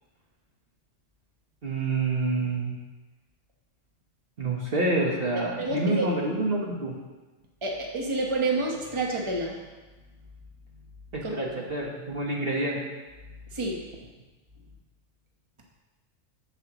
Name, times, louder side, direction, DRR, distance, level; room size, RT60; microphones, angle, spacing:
voice 1, 1.6-2.8 4.4-6.9 11.1-12.8, right 2 dB, 50° right, -2 dB, 1.3 m, -27 dB
voice 2, 5.6-6.1 7.6-9.6 11.2-11.5 13.5-13.8, right 2 dB, 25° right, -1 dB, 1.2 m, -29 dB
11.5 x 7.6 x 3.0 m, 1.2 s
omnidirectional pair, 1.3 m